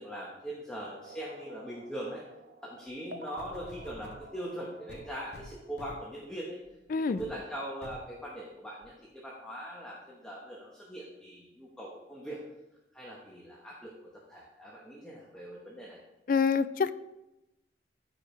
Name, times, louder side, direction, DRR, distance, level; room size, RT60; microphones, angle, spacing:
voice 1, 0.0-2.2 2.6-6.6 7.1-12.4 12.9-16.0, right 1 dB, 5° left, -5 dB, 1.0 m, -41 dB
sound 1, 1.0-6.4, right 1 dB, 55° right, 0.7 m, -51 dB
sound 2, 3.4-4.3 4.9-6.1 6.6-6.8 7.2-7.4 7.8-8.1 8.8-8.9, left 1 dB, 65° left, 0.7 m, -49 dB
voice 2, 6.9-7.2 16.3-16.9, left 5 dB, 50° left, 15 dB, 0.3 m, -26 dB
13.5 x 5.0 x 3.2 m, 0.94 s
head